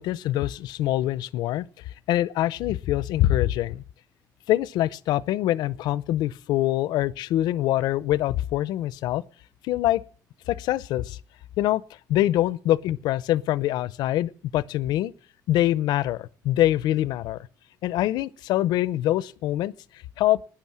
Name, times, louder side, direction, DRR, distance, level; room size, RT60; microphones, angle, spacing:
voice 1, 0.0-1.7 2.1-3.8 4.5-9.2 9.6-10.0 10.5-11.2 11.6-11.8 12.1-15.1 15.5-17.5 17.8-19.7 20.2-20.4, left 14 dB, 90° left, 0.6 m, -24 dB
12.0 x 10.0 x 7.3 m
cardioid pair, 120°, 7 cm